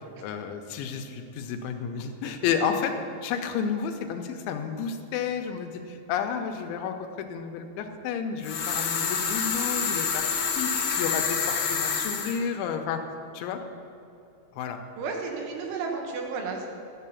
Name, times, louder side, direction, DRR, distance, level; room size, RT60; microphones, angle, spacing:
voice 1, 0.2-2.9 3.2-10.3 10.6-13.0 13.3-13.6 14.6-14.8, left 7 dB, 90° left, 5 dB, 3.1 m, -31 dB
sound 1, 8.4-12.4, left 6 dB, 60° left, 2.1 m, -27 dB
voice 2, 15.0-16.7, right 4 dB, 85° right, 2 dB, 3.8 m, -32 dB
12.0 x 7.6 x 7.1 m, 2.7 s
omnidirectional pair, 5.4 m